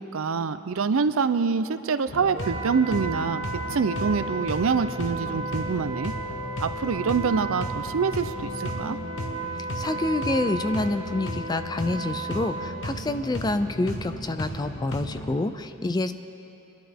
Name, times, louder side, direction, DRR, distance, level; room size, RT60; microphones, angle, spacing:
voice 1, 0.0-3.4 3.7-6.1 6.6-9.0, right 5 dB, 65° right, 12 dB, 0.5 m, -25 dB
sound 1, 2.1-15.4, equal, 60° left, 1.4 m, -35 dB
Wind instrument woodwind instrument, 2.3-12.8, right 3 dB, 30° right, 1.3 m, -35 dB
voice 2, 9.6-16.1, left 2 dB, 20° left, 10 dB, 0.4 m, -27 dB
23.5 x 11.5 x 3.5 m, 2.8 s
head